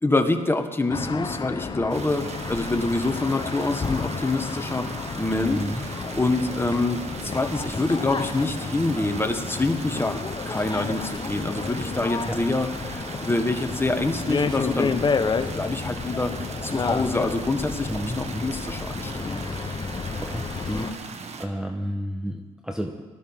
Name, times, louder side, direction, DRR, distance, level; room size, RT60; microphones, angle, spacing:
voice 1, 0.0-4.9 5.2-5.6 6.1-10.2 10.4-15.1 15.5-16.3 16.6-17.9 18.2-19.4 20.7-20.9, left 2 dB, 15° left, 6 dB, 1.5 m, -26 dB
sound 1, 0.9-20.9, left 5 dB, 30° left, 0.9 m, -31 dB
sound 2, 1.9-21.5, right 5 dB, 50° right, 1.4 m, -39 dB
voice 2, 5.4-5.9 12.3-12.4 17.9-18.6 20.2-21.0 21.4-23.0, equal, 5° right, 4 dB, 1.1 m, -32 dB
18.5 x 13.0 x 3.7 m, 1.4 s
supercardioid pair, 70°, 14 cm